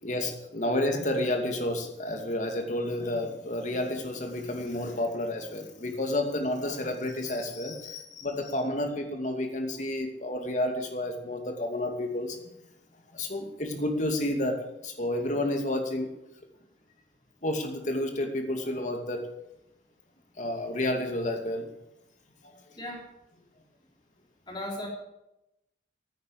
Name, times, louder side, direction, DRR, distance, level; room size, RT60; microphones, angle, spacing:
voice 1, 0.0-12.4 13.1-14.6 14.8-16.1 17.4-19.3 20.4-21.7 22.4-22.6, left 1 dB, 40° left, 4 dB, 2.6 m, -30 dB
voice 2, 24.5-24.9, left 1 dB, 25° left, 0 dB, 3.6 m, -36 dB
14.5 x 9.4 x 7.5 m, 0.87 s
head